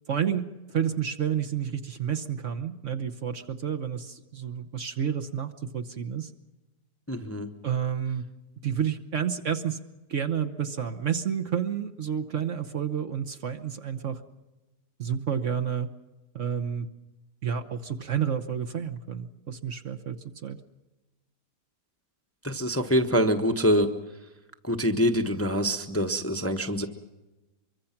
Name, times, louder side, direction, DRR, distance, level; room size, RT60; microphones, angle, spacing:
voice 1, 0.1-6.3 7.6-8.2 8.6-9.8 10.1-14.2 15.0-15.9 16.3-16.9 17.4-20.2 20.4-20.6, right 8 dB, 50° right, 5 dB, 1.2 m, -30 dB
voice 2, 7.1-7.5 22.4-23.9 24.6-26.9, equal, 10° left, 5 dB, 1.0 m, -25 dB
24.5 x 23.5 x 5.9 m, 1.1 s
omnidirectional pair, 1.8 m